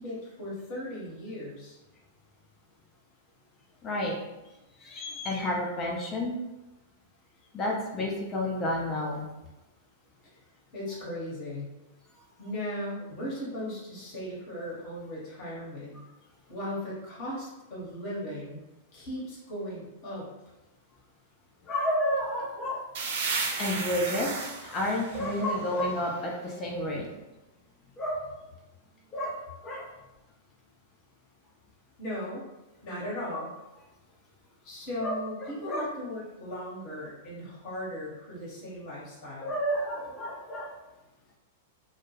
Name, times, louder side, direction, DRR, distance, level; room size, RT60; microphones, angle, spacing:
voice 1, 0.0-1.8 10.7-11.7 12.4-16.0 16.5-18.6 18.9-20.2 32.0-32.4 32.8-33.5 34.6-39.6, left 1 dB, 45° left, -6 dB, 0.9 m, -37 dB
voice 2, 3.8-4.2 4.8-6.4 7.5-9.3 21.6-22.8 23.6-27.1 28.0-28.2 29.1-29.4 29.6-29.9 33.3-33.4 35.0-35.9 39.4-40.7, left 1 dB, 25° left, -2 dB, 0.5 m, -30 dB
sound 1, 22.9-26.6, right 4 dB, 60° right, 0.4 m, -34 dB
2.2 x 2.1 x 3.1 m, 1.0 s
figure-of-eight pair, 100°, 0 cm